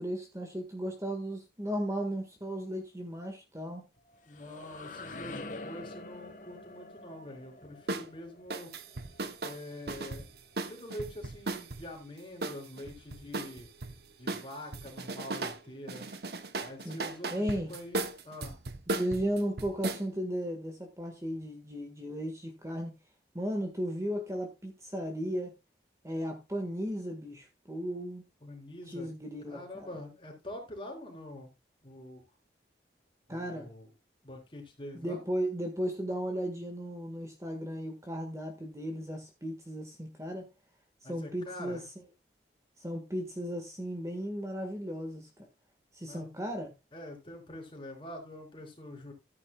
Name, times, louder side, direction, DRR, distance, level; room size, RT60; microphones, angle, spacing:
voice 1, 0.0-3.8 16.8-17.0 17.3-17.7 18.9-22.9 23.3-25.5 26.0-28.2 28.9-30.0 33.3-33.7 34.9-40.5 41.0-41.8 42.8-45.3 45.9-46.7, equal, 15° right, 1.6 m, -35 dB
sound 1, 4.0-9.7, left 2 dB, 45° left, 1.5 m, -46 dB
voice 2, 4.3-8.7 9.4-10.3 10.7-13.7 14.2-16.1 16.6-18.6 28.4-29.1 29.5-31.5 31.8-32.2 33.3-33.9 34.2-35.2 41.0-41.8 46.1-46.3 46.9-49.1, left 1 dB, 30° left, 4.1 m, -45 dB
sound 2, 7.9-8.1 8.5-11.8 12.4-13.9 14.3-15.6 15.9-20.0, right 2 dB, 65° right, 1.0 m, -36 dB
14.0 x 9.8 x 2.3 m
head